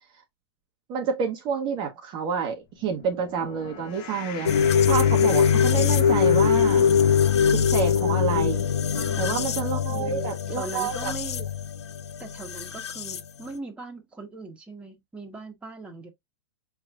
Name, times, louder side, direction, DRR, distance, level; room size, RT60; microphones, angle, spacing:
voice 1, 0.9-4.6 4.9-6.8 7.5-8.6 9.2-11.1, right 6 dB, 35° right, 1.0 m, -28 dB
sound 1, 2.7-9.2, left 8 dB, 40° left, 0.9 m, -42 dB
sound 2, 4.5-13.2, left 7 dB, 85° left, 0.5 m, -22 dB
voice 2, 8.9-9.4 9.9-11.4 12.2-16.1, right 3 dB, 10° right, 1.3 m, -40 dB
5.6 x 3.2 x 2.4 m
hypercardioid pair, 120°, 14 cm